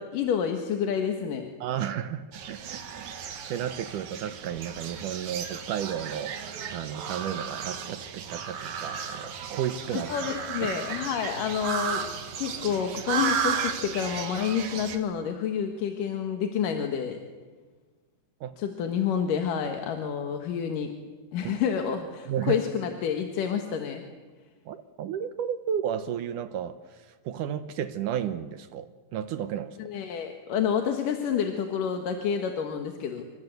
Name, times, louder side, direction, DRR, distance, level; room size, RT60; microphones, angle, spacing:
voice 1, 0.0-1.5 9.9-12.1 12.4-17.2 18.6-20.9 21.3-24.0 29.8-33.2, left 7 dB, 60° left, 5 dB, 3.0 m, -29 dB
voice 2, 1.6-10.1 10.6-10.8 18.4-18.6 21.4-21.5 22.3-22.6 24.7-29.8, right 9 dB, 70° right, 11 dB, 2.0 m, -33 dB
sound 1, 2.3-15.0, right 7 dB, 55° right, 2.7 m, -34 dB
27.5 x 26.0 x 8.0 m, 1.4 s
omnidirectional pair, 4.6 m